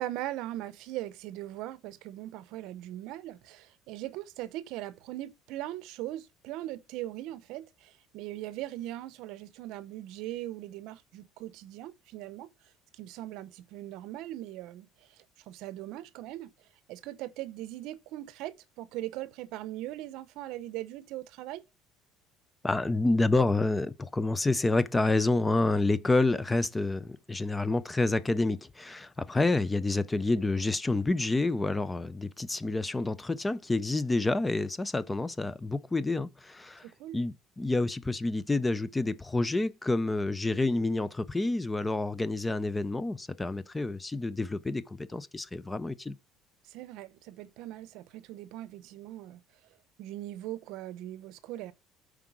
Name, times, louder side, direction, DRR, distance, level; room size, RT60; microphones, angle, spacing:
voice 1, 0.0-12.5 13.0-14.9 15.5-16.5 16.9-21.6 36.8-37.2 46.7-49.4 50.0-51.7, right 15 dB, 70° right, 0.7 m, -40 dB
voice 2, 22.6-36.9 37.1-46.1, left 2 dB, 10° left, 0.4 m, -28 dB
7.5 x 4.8 x 6.0 m
cardioid pair, 150°, 0 cm